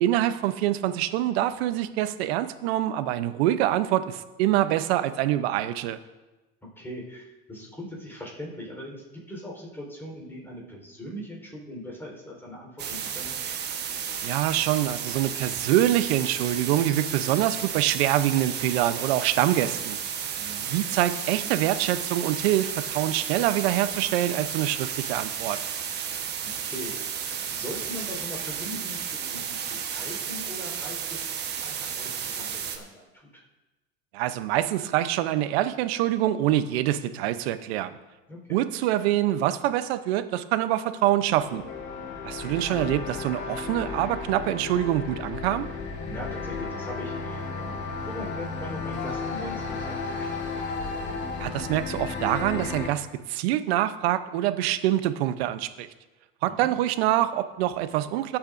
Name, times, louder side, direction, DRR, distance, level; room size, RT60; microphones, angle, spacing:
voice 1, 0.0-6.0 14.2-20.0 20.6-25.6 34.1-38.0 38.5-41.6 42.2-45.7 51.4-55.9 56.4-58.4, right 13 dB, 85° right, 12 dB, 0.8 m, -25 dB
voice 2, 6.8-13.3 20.3-20.7 26.4-29.6 29.9-31.3 31.6-33.4 38.3-38.6 46.0-50.5 56.6-56.7, left 1 dB, 5° left, -2 dB, 4.2 m, -40 dB
sound 1, 12.8-32.8, right 8 dB, 35° right, 1.2 m, -33 dB
sound 2, 41.0-52.9, left 4 dB, 35° left, 1.8 m, -34 dB
22.0 x 8.6 x 2.6 m, 1.1 s
supercardioid pair, 145°, 31 cm